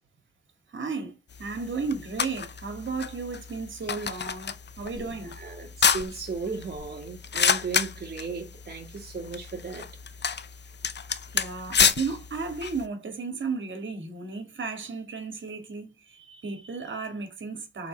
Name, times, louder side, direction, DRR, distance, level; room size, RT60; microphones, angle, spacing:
voice 1, 0.7-5.4 11.3-17.9, right 4 dB, 65° right, 2.3 m, -34 dB
sound 1, 1.3-12.9, left 6 dB, 60° left, 0.8 m, -30 dB
voice 2, 5.0-9.9, right 4 dB, 50° right, 2.0 m, -36 dB
5.7 x 4.3 x 6.3 m
wide cardioid pair, 85°, 21 cm